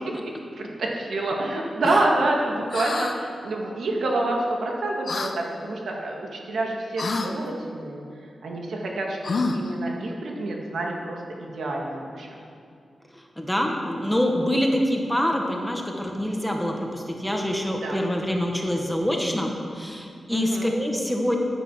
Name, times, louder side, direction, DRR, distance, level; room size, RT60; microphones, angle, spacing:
voice 1, 0.6-8.0 8.4-12.3 17.8-18.0 20.3-20.7, right 2 dB, 80° right, -1 dB, 2.1 m, -27 dB
sound 1, 2.7-3.2 5.1-5.3 7.0-7.3 9.2-9.7, left 3 dB, 45° left, 0.8 m, -27 dB
voice 2, 13.4-21.4, equal, 5° left, 1 dB, 1.3 m, -25 dB
14.0 x 9.1 x 6.3 m, 2.4 s
wide cardioid pair, 155°, 0 cm